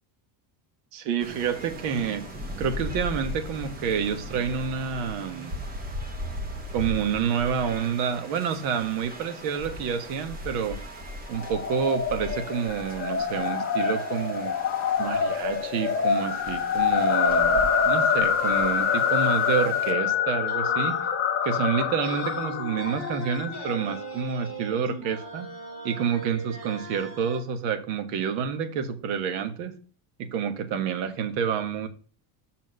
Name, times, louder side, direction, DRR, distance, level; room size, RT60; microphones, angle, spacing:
voice 1, 0.9-2.3 2.6-5.6 6.7-10.8 11.3-14.5 15.0-21.0 21.4-25.5 25.8-29.8 30.2-31.9, right 7 dB, 90° right, 1.5 m, -28 dB
sound 1, 1.2-19.9, equal, 20° right, 0.9 m, -39 dB
sound 2, 11.3-23.8, left 7 dB, 25° left, 0.7 m, -26 dB
sound 3, 20.5-27.4, right 2 dB, 40° right, 3.5 m, -39 dB
6.3 x 4.4 x 6.3 m
cardioid pair, 170°, 50 cm